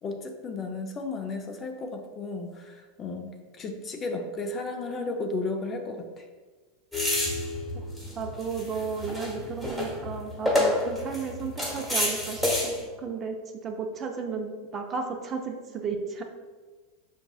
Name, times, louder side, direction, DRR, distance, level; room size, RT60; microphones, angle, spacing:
voice 1, 0.0-6.3, left 3 dB, 30° left, 4 dB, 0.5 m, -34 dB
sound 1, 6.9-12.8, left 1 dB, 5° left, 1.1 m, -29 dB
voice 2, 8.1-13.4 13.6-16.2, right 5 dB, 35° right, 4 dB, 0.5 m, -34 dB
5.8 x 2.6 x 2.3 m, 1.4 s
supercardioid pair, 120°, 0 cm